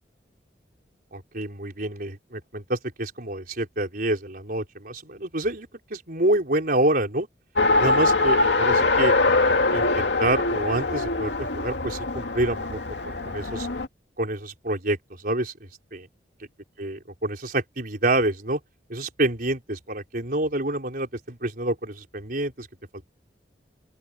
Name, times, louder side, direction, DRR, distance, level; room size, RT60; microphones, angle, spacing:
voice 1, 1.1-7.3 7.8-9.1 9.7-12.8 13.0-13.7 14.2-16.1 16.8-18.6 18.9-22.7 22.9-23.1, right 1 dB, 55° right, 4.5 m, -27 dB
Race car auto racing, 7.6-13.9, left 3 dB, 90° left, 2.3 m, -23 dB
open air
head